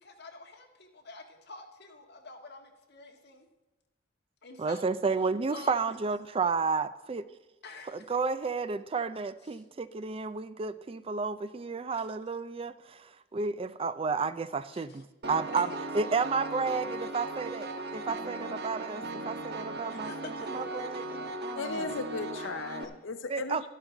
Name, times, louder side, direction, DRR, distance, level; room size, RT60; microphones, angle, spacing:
voice 1, 0.0-3.5 4.4-4.9 5.2-6.0 7.6-8.2 9.4-9.6 11.9-12.1 14.7-15.0 15.5-15.7 19.9-20.8, left 2 dB, 60° left, 2 dB, 1.8 m, -48 dB
voice 2, 4.6-7.2 7.9-15.7 15.9-20.1 20.5-21.0 21.4-21.9 23.3-23.7, right 4 dB, 30° right, 14 dB, 0.4 m, -32 dB
Piano, 15.2-22.8, right 2 dB, 55° right, 1.2 m, -37 dB
voice 3, 21.6-23.7, left 4 dB, 80° left, 9 dB, 0.6 m, -36 dB
13.0 x 11.5 x 3.9 m, 1.1 s
head